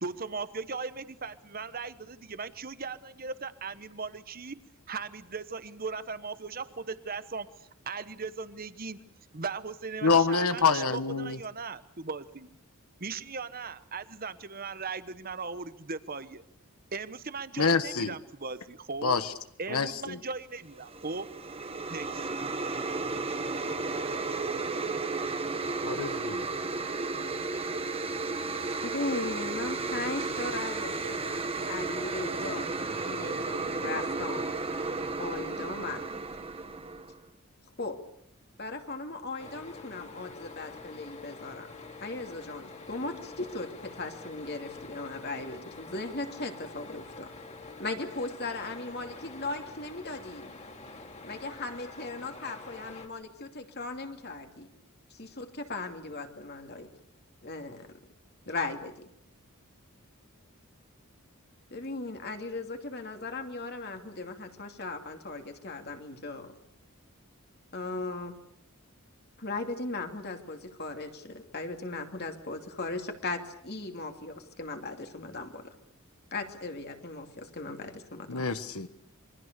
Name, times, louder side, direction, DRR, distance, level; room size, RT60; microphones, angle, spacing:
voice 1, 0.0-9.0 9.3-12.6 13.0-16.4 16.9-19.2 19.6-21.3 21.9-22.3, right 4 dB, 40° right, 13 dB, 1.2 m, -38 dB
voice 2, 10.0-11.4 17.6-18.1 19.0-19.3 19.7-20.2 25.8-26.5 78.3-78.9, left 4 dB, 80° left, 11 dB, 1.3 m, -26 dB
sound 1, 20.7-37.2, right 3 dB, 25° right, 1.5 m, -33 dB
voice 3, 28.8-32.7 33.0-34.5 35.2-36.0 37.8-38.0 38.6-41.7 42.0-47.3 47.8-50.6 51.2-54.7 55.1-56.9 57.4-57.9 58.5-59.0 61.7-66.5 67.7-68.4 69.4-75.7 76.3-78.4, left 2 dB, 45° left, 5 dB, 2.7 m, -37 dB
sound 2, 39.4-53.1, left 3 dB, 30° left, 2.7 m, -46 dB
27.5 x 24.0 x 6.8 m, 0.70 s
head